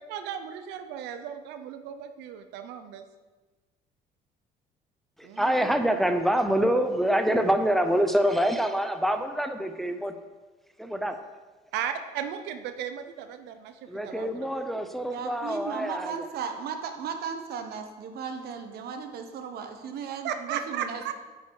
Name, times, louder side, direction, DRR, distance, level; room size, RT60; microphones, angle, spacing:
voice 1, 0.1-3.0 5.2-5.9 11.7-14.4 20.2-21.1, right 9 dB, 90° right, 9 dB, 0.7 m, -36 dB
voice 2, 5.2-10.1 10.8-11.2 13.9-16.3, equal, ahead, 7 dB, 0.6 m, -26 dB
voice 3, 15.1-21.1, right 6 dB, 65° right, 6 dB, 1.2 m, -36 dB
9.5 x 5.6 x 4.8 m, 1.3 s
cardioid pair, 110°, 17 cm